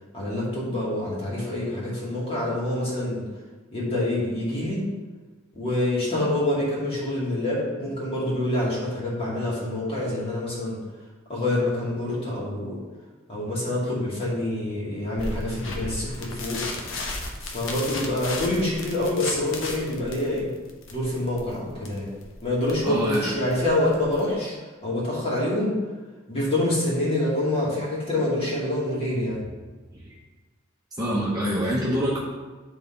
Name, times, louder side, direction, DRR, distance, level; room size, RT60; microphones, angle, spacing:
voice 1, 0.1-3.2 3.7-4.8 5.5-10.8 11.3-12.8 13.3-16.6 17.4-20.5 20.9-22.1 22.4-24.5 24.8-25.7 26.3-29.4, left 1 dB, 30° left, -6 dB, 2.4 m, -26 dB
sound 1, 15.2-24.3, left 2 dB, 65° left, 1.1 m, -35 dB
voice 2, 22.8-23.3 31.0-32.2, equal, 20° right, -7 dB, 1.1 m, -25 dB
9.9 x 4.0 x 3.9 m, 1.3 s
head